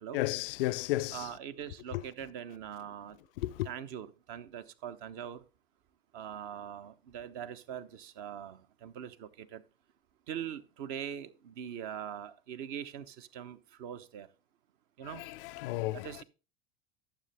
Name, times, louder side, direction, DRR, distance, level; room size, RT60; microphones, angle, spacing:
voice 1, 0.1-1.3 1.9-2.0 3.4-3.7 15.0-16.2, left 17 dB, 65° left, 0.5 m, -33 dB
voice 2, 1.1-3.2 3.6-5.4 6.1-9.6 10.3-14.3 15.0-15.2 15.9-16.2, right 9 dB, 55° right, 1.0 m, -42 dB
12.5 x 7.0 x 3.4 m
hypercardioid pair, 85°, 30 cm